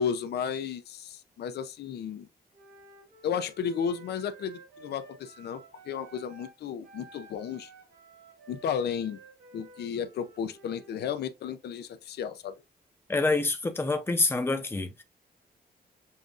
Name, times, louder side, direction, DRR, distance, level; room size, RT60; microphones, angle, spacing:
voice 1, 0.0-2.3 3.2-7.7 8.5-9.2 9.5-12.5, left 7 dB, 90° left, 0.6 m, -33 dB
Wind instrument woodwind instrument, 2.5-6.6 6.8-11.0, right 3 dB, 80° right, 2.0 m, -53 dB
voice 2, 13.1-15.0, left 3 dB, 15° left, 0.7 m, -27 dB
7.1 x 2.4 x 2.5 m
wide cardioid pair, 130°, 17 cm